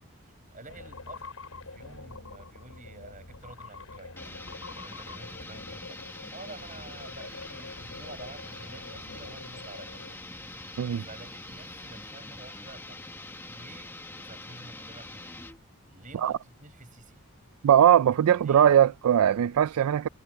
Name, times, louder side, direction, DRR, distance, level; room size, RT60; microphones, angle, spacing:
voice 1, 0.2-1.3 1.7-4.3 4.7-6.0 6.3-10.0 11.0-13.0 13.5-15.4 15.9-17.2 18.3-18.8, right 2 dB, 35° right, 6.8 m, -49 dB
sound 1, 0.7-10.2, left 3 dB, 75° left, 3.5 m, -46 dB
sound 2, 4.1-15.6, left 2 dB, 10° left, 0.9 m, -44 dB
Cricket, 5.7-12.1, right 3 dB, 60° right, 3.1 m, -54 dB
voice 2, 17.6-20.1, right 9 dB, 80° right, 0.3 m, -20 dB
head